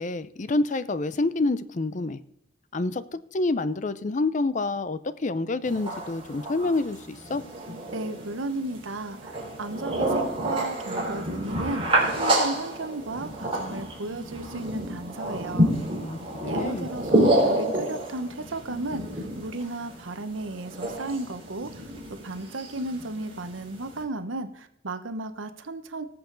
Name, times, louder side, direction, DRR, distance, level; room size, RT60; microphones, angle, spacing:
voice 1, 0.0-2.2 2.7-7.4 16.0-16.9, left 2 dB, 40° left, 15 dB, 0.5 m, -28 dB
sound 1, 5.6-24.0, right 1 dB, 30° right, 3.5 m, -29 dB
voice 2, 7.9-15.8 16.5-21.9 22.2-26.0, right 2 dB, 85° right, 10 dB, 1.0 m, -34 dB
19.0 x 7.1 x 3.9 m, 0.79 s
head